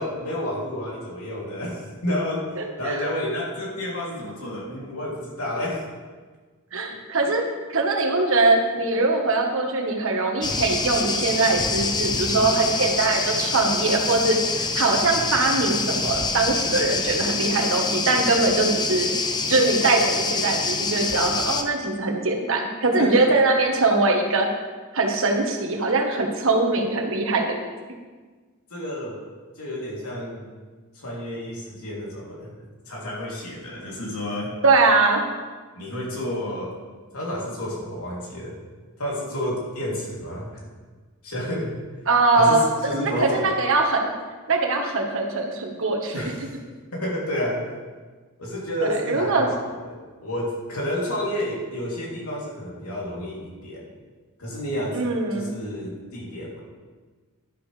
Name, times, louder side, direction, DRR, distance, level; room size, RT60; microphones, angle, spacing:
voice 1, 0.0-2.5 2.8-5.8 6.9-7.0 23.0-23.4 28.7-29.2 29.6-30.5 30.9-32.5 32.9-34.5 35.8-36.7 37.1-38.6 39.0-40.7 41.2-41.8 42.3-43.5 46.1-46.6 46.9-47.7 48.4-53.9 54.4-55.0 55.3-56.6, left 1 dB, 75° left, -4 dB, 3.2 m, -30 dB
voice 2, 2.5-3.0 6.7-7.4 7.7-19.1 19.5-24.5 24.9-27.6 34.6-35.2 42.1-42.6 42.9-44.1 44.5-46.2 48.8-49.5 54.9-55.5, right 3 dB, 65° right, 2 dB, 1.4 m, -22 dB
sound 1, 10.4-21.6, left 4 dB, 20° left, 0.6 m, -26 dB
11.5 x 11.0 x 3.4 m, 1.4 s
head